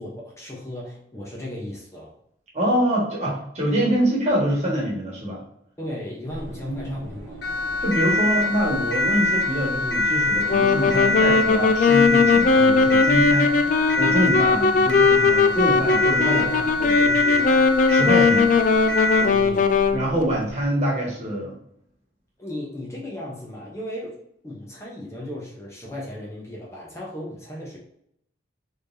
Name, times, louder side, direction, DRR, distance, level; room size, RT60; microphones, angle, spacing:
voice 1, 0.0-2.1 5.8-7.4 16.2-16.7 17.0-17.5 19.2-19.7 22.4-27.8, left 1 dB, 15° left, -4 dB, 0.8 m, -35 dB
voice 2, 2.5-5.4 6.6-7.1 7.8-16.4 16.8-16.9 17.9-18.5 19.9-21.5, equal, 40° right, -4 dB, 1.5 m, -25 dB
sound 1, 6.3-20.7, right 1 dB, 75° right, 0.9 m, -40 dB
Siren, 7.4-19.4, left 2 dB, 65° left, 1.3 m, -24 dB
Wind instrument woodwind instrument, 10.5-20.0, left 4 dB, 45° left, 0.3 m, -19 dB
4.1 x 3.3 x 2.6 m, 0.73 s
head